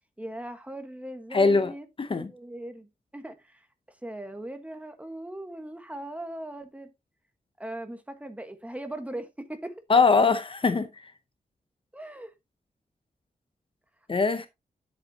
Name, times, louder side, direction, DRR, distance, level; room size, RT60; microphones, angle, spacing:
voice 1, 0.2-2.9 3.1-3.7 4.0-6.9 7.6-9.7 11.9-12.3, right 1 dB, 10° right, 1.3 m, -39 dB
voice 2, 1.3-1.7 2.0-2.3 9.9-11.1 14.1-14.5, left 4 dB, 35° left, 0.7 m, -22 dB
10.0 x 8.1 x 2.8 m
wide cardioid pair, 140°, 15 cm